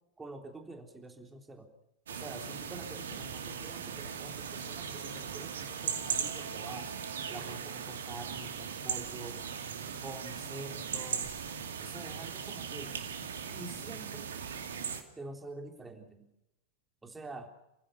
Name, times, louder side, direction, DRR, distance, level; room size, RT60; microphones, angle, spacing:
voice 1, 0.2-1.7 2.1-6.9 7.3-9.5 10.0-11.3 11.8-13.0 13.5-14.4 15.2-16.2 17.0-17.5, right 2 dB, 15° right, 4 dB, 3.7 m, -47 dB
sound 1, 2.1-15.0, right 7 dB, 70° right, 2.4 m, -38 dB
29.0 x 15.5 x 7.0 m, 0.88 s
figure-of-eight pair, 90°, 0 cm